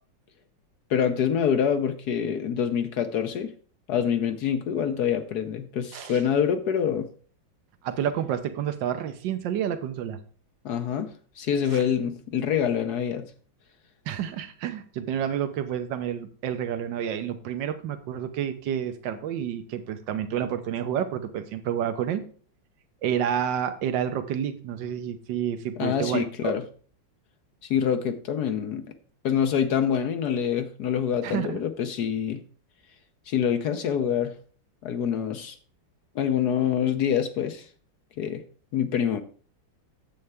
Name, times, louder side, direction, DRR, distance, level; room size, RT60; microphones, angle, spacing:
voice 1, 0.9-3.5 3.9-7.1 10.6-11.1 11.4-13.3 25.8-26.6 27.7-28.9 29.2-32.4 33.3-34.4 34.8-35.6 36.1-37.7 38.2-38.4 38.7-39.2, left 8 dB, 65° left, 8 dB, 1.2 m, -26 dB
voice 2, 7.8-10.2 11.7-11.8 14.1-22.2 23.0-26.6 31.2-31.6, right 9 dB, 70° right, 8 dB, 1.6 m, -29 dB
9.7 x 7.7 x 3.5 m, 0.43 s
omnidirectional pair, 2.1 m